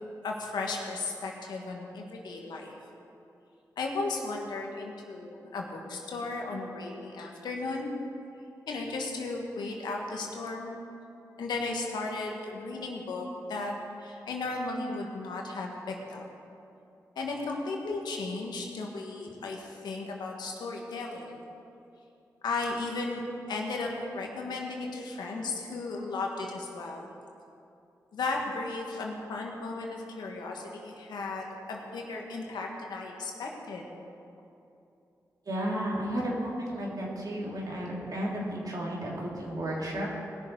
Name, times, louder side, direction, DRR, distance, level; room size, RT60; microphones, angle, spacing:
voice 1, 0.2-2.7 3.8-7.9 8.7-10.8 11.4-13.7 14.0-16.2 17.1-21.4 22.4-27.0 28.1-33.8, left 3 dB, 85° left, 0 dB, 1.5 m, -35 dB
voice 2, 35.5-40.2, right 1 dB, 60° right, -4 dB, 3.2 m, -33 dB
18.5 x 6.6 x 4.8 m, 2.7 s
cardioid pair, 45°, 7 cm